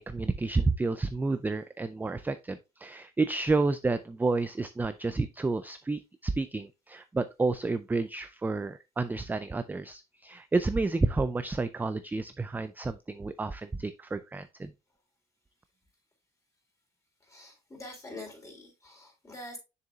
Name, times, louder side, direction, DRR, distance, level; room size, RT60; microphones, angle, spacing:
voice 1, 0.0-14.7, right 3 dB, 10° right, 0.4 m, -30 dB
voice 2, 17.2-19.6, left 2 dB, 20° left, 4.0 m, -45 dB
6.8 x 6.7 x 2.4 m
cardioid pair, 110°, 17 cm